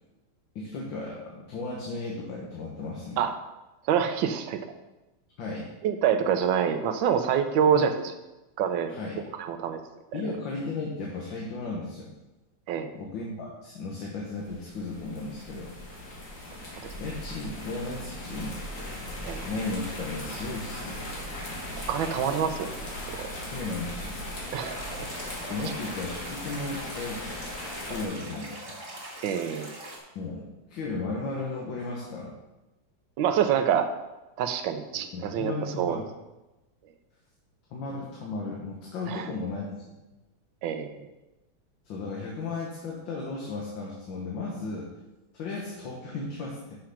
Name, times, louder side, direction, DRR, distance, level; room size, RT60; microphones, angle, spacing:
voice 1, 0.6-3.2 5.4-5.7 7.7-7.9 8.9-9.2 10.1-12.1 12.9-15.8 17.0-18.6 19.4-21.0 23.4-24.2 25.5-27.2 27.9-28.7 30.2-30.4 30.7-32.3 35.1-36.1 37.7-39.7 41.9-44.9 45.3-46.8, left 3 dB, 75° left, -3 dB, 1.9 m, -35 dB
voice 2, 3.9-4.6 5.8-7.9 8.6-8.9 9.4-9.8 12.7-12.9 16.8-16.9 19.2-19.4 21.9-22.7 23.1-23.3 24.5-24.8 29.2-29.7 33.2-33.9 34.4-36.0 39.1-39.2 40.6-41.0, right 8 dB, 80° right, 7 dB, 1.4 m, -26 dB
sound 1, 14.3-28.0, left 1 dB, 45° left, 1.9 m, -39 dB
sound 2, 16.9-25.3, right 3 dB, 15° left, 1.5 m, -44 dB
sound 3, 24.6-30.0, right 1 dB, 25° right, 2.3 m, -42 dB
6.4 x 5.8 x 5.8 m, 1.0 s
omnidirectional pair, 2.1 m